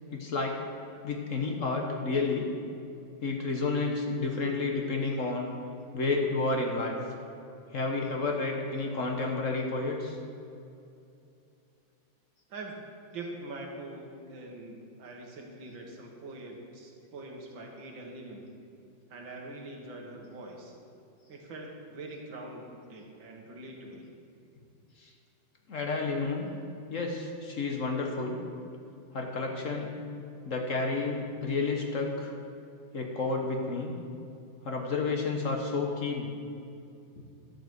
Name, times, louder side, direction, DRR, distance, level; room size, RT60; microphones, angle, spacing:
voice 1, 0.1-0.6 1.0-2.5 3.2-5.5 5.9-7.0 7.7-10.2 25.0-25.1 25.7-26.5 26.9-28.4 29.1-29.9 30.4-32.3 32.9-34.0 34.6-36.3 37.2-37.3, left 3 dB, 50° left, 2 dB, 1.2 m, -30 dB
voice 2, 13.1-18.5 19.1-20.7 21.3-22.6 22.9-24.1, right 2 dB, 85° right, 0 dB, 2.2 m, -43 dB
11.5 x 5.6 x 7.8 m, 2.6 s
omnidirectional pair, 2.1 m